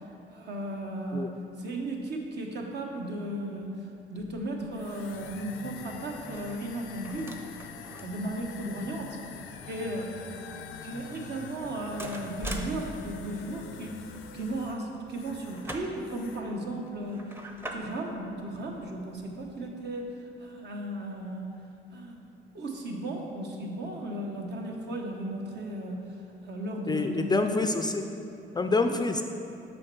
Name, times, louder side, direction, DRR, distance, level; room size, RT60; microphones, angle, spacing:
voice 1, 0.3-3.7 4.1-7.3 7.9-9.2 9.6-10.1 10.8-14.0 14.3-17.2 17.7-20.1 20.4-21.4 21.9-22.2 22.5-26.0 26.4-27.4 28.9-29.0, right 1 dB, 60° right, 1 dB, 1.1 m, -35 dB
sound 1, 4.2-19.6, right 1 dB, 10° right, 0.7 m, -46 dB
sound 2, 4.7-15.7 16.0-16.5, left 7 dB, 85° left, 0.5 m, -46 dB
voice 2, 26.9-28.1 28.5-29.2, left 3 dB, 20° left, 6 dB, 0.4 m, -26 dB
6.3 x 4.3 x 6.1 m, 2.8 s
cardioid pair, 90°, 20 cm